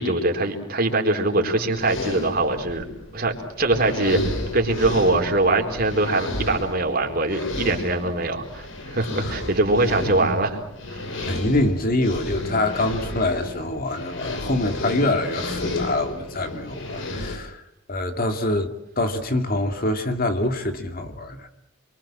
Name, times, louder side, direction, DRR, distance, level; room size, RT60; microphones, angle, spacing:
voice 1, 0.0-2.8 3.1-4.2 4.5-10.6 10.9-11.0, right 2 dB, 45° right, 4.2 m, -22 dB
sound 1, 1.4-17.4, left 1 dB, 65° left, 4.2 m, -32 dB
voice 2, 11.2-17.6 17.9-21.5, left 1 dB, 45° left, 2.4 m, -25 dB
28.0 x 24.5 x 7.6 m
head